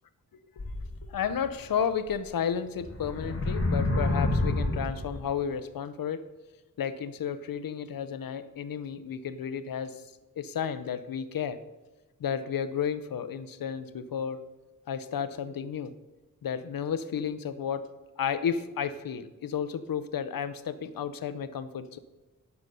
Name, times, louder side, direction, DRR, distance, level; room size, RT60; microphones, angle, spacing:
sound 1, 0.6-1.5 2.1-2.2 2.8-5.3, left 2 dB, 45° left, 2.0 m, -29 dB
voice 1, 1.1-6.2 6.8-10.0 10.4-11.6 12.2-14.4 14.9-15.9 16.4-17.9 18.2-22.0, left 7 dB, 90° left, 13 dB, 0.7 m, -32 dB
9.6 x 7.0 x 5.4 m, 1.1 s
wide cardioid pair, 80°, 33 cm